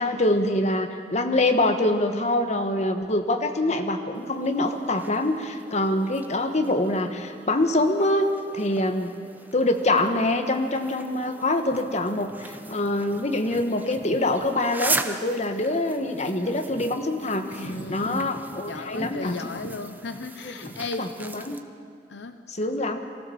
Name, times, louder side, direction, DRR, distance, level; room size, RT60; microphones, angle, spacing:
voice 1, 0.0-8.3 8.5-9.1 9.5-19.6 20.4-21.6 22.5-23.0, left 1 dB, 40° left, 6 dB, 1.3 m, -25 dB
sound 1, 4.1-21.6, right 2 dB, 10° right, 0.8 m, -38 dB
voice 2, 17.4-18.3 18.7-21.1 22.1-23.0, left 3 dB, 75° left, 9 dB, 0.8 m, -36 dB
23.5 x 15.5 x 7.1 m, 2.2 s
head